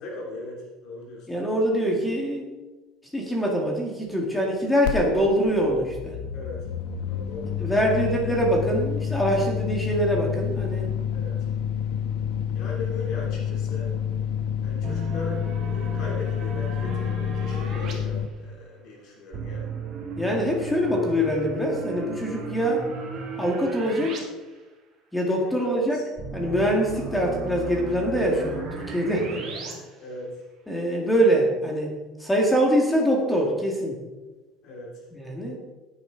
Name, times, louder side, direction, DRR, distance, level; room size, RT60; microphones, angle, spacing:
voice 1, 0.0-1.4 6.3-6.7 7.1-8.1 11.1-11.5 12.5-13.9 14.6-19.7 25.4-26.0 30.0-30.4 34.6-35.0, left 2 dB, 45° left, -2 dB, 3.0 m, -38 dB
voice 2, 1.3-2.5 3.1-6.2 7.6-10.9 20.2-22.9 23.4-24.2 25.1-26.0 26.3-29.8 30.7-31.9 32.2-34.0 35.1-35.6, equal, 5° left, -1 dB, 1.9 m, -24 dB
sound 1, 4.8-5.0 5.2-18.3, left 8 dB, 75° left, 1.2 m, -29 dB
sound 2, 14.8-17.9 19.3-24.2 24.5-24.6 26.2-29.7, right 3 dB, 35° right, 2.8 m, -35 dB
16.0 x 9.6 x 3.9 m, 1.2 s
cardioid pair, 175°, 0 cm